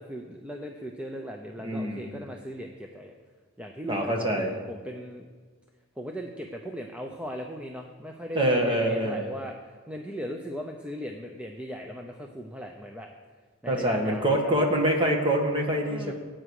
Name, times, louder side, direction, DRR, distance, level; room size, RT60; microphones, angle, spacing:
voice 1, 0.0-3.1 3.6-5.3 6.0-13.1 13.6-14.5 15.9-16.1, equal, 5° right, 2 dB, 0.7 m, -38 dB
voice 2, 1.6-2.2 3.9-4.6 8.4-9.3 13.7-16.1, right 1 dB, 25° right, 1 dB, 1.8 m, -25 dB
17.5 x 8.9 x 4.9 m, 1.5 s
head